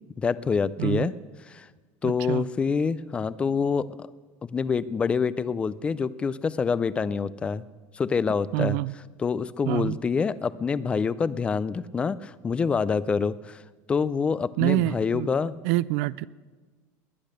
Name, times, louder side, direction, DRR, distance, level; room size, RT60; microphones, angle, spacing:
voice 1, 0.2-1.1 1.5-1.7 2.0-4.1 4.5-7.6 7.9-8.8 9.2-13.6 13.9-15.6, left 5 dB, 15° left, 18 dB, 0.4 m, -26 dB
voice 2, 0.8-1.1 2.0-2.4 8.5-8.9 9.6-10.0 14.6-15.3 15.6-16.3, right 18 dB, 70° right, 19 dB, 0.4 m, -26 dB
20.5 x 10.5 x 6.5 m, 1.4 s
cardioid pair, 175°, 8 cm